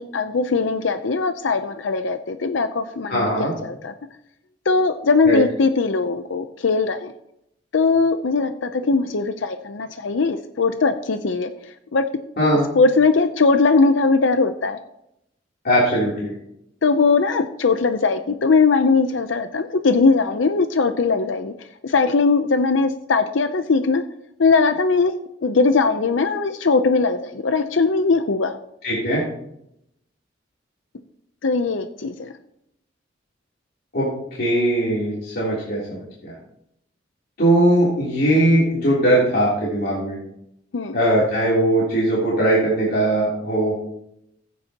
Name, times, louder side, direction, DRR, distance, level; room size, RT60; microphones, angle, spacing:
voice 1, 0.0-3.9 4.7-7.1 7.7-11.5 11.9-12.0 12.8-14.8 16.8-21.5 21.8-24.0 24.4-25.1 25.4-28.6 31.4-32.3 40.7-41.0, left 4 dB, 85° left, 9 dB, 0.6 m, -20 dB
voice 2, 3.1-3.5 5.2-5.4 12.4-12.7 15.6-16.3 28.8-29.2 33.9-34.1 34.4-36.3 37.4-40.2 40.9-43.7, right 1 dB, 55° left, -7 dB, 3.3 m, -19 dB
15.0 x 9.4 x 2.9 m, 0.77 s
head